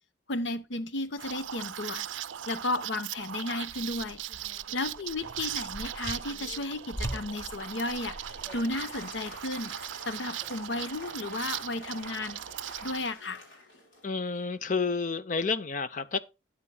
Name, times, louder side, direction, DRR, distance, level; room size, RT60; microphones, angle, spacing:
voice 1, 0.3-2.1 2.5-4.2 4.7-8.2 8.5-9.7 10.1-12.4 12.8-13.4, left 2 dB, 75° left, 0.8 m, -33 dB
Liquid, 1.2-13.0, right 11 dB, 85° right, 0.4 m, -39 dB
sound 1, 3.7-11.3 11.6-13.1, right 1 dB, 15° left, 1.2 m, -44 dB
Applause, 7.3-14.5, left 2 dB, 90° left, 4.4 m, -49 dB
voice 2, 14.0-16.2, left 4 dB, 40° left, 0.5 m, -30 dB
12.5 x 9.0 x 2.2 m
head